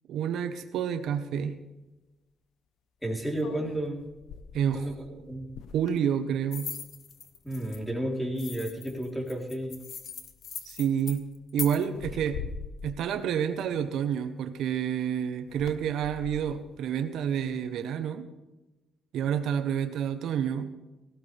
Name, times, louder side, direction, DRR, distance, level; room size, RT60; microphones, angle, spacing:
voice 1, 0.1-1.6 4.5-5.3 5.7-6.7 10.6-11.2 11.5-12.4 12.8-18.3 19.1-20.7, right 8 dB, 80° right, 8 dB, 0.9 m, -29 dB
sound 1, 1.1-1.2 3.4-7.0 7.4-7.7 8.1-8.8 9.6-9.8 10.2-10.5 11.8-14.5 15.4-17.8, left 6 dB, 80° left, 0.9 m, -45 dB
voice 2, 3.0-4.1 4.7-5.0 5.3-5.5 7.4-9.8, right 1 dB, 5° left, 0 dB, 3.6 m, -32 dB
sound 2, 6.5-7.8 8.4-11.8, left 6 dB, 60° left, 1.4 m, -40 dB
18.0 x 15.0 x 3.4 m, 1.1 s
cardioid pair, 90°, 0 cm